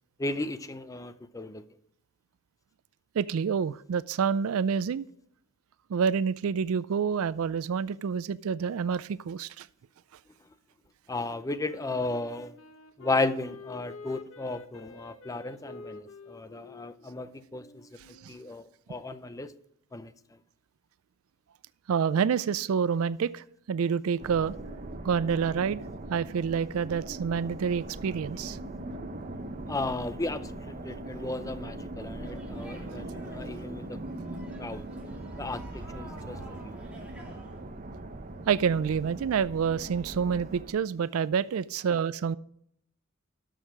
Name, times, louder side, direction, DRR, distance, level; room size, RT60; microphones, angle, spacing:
voice 1, 0.2-1.6 11.1-12.6 13.0-19.5 19.9-20.4 29.7-34.0 34.3-34.8 35.4-36.7, left 2 dB, 15° left, 0.5 m, -35 dB
voice 2, 3.2-5.1 5.9-9.7 18.2-18.3 21.9-24.5 25.0-25.8 26.1-28.6 38.5-42.4, right 6 dB, 80° right, 0.4 m, -28 dB
Wind instrument woodwind instrument, 11.6-18.4, left 3 dB, 65° left, 0.9 m, -48 dB
sound 1, 24.2-40.7, right 2 dB, 40° right, 0.8 m, -40 dB
sound 2, 32.2-37.6, right 2 dB, 5° right, 2.5 m, -52 dB
12.5 x 6.3 x 4.8 m
head